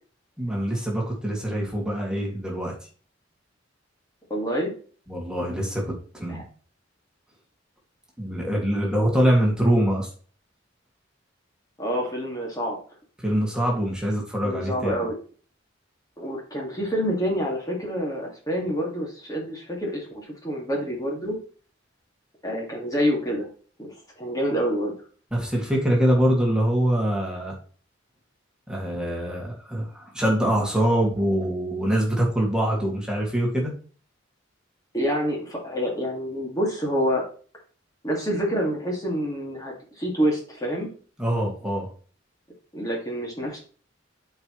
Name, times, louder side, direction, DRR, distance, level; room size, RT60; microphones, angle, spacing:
voice 1, 0.4-2.7 5.1-6.4 8.2-10.1 13.2-15.1 25.3-27.5 28.7-33.7 41.2-41.9, right 1 dB, 5° right, -2 dB, 2.2 m, -24 dB
voice 2, 4.3-4.7 6.3-6.4 11.8-12.8 14.4-15.2 16.2-21.4 22.4-23.5 23.8-24.9 34.9-37.2 38.0-40.9 42.7-43.6, equal, 20° left, -1 dB, 2.1 m, -27 dB
12.5 x 4.8 x 3.1 m, 0.41 s
head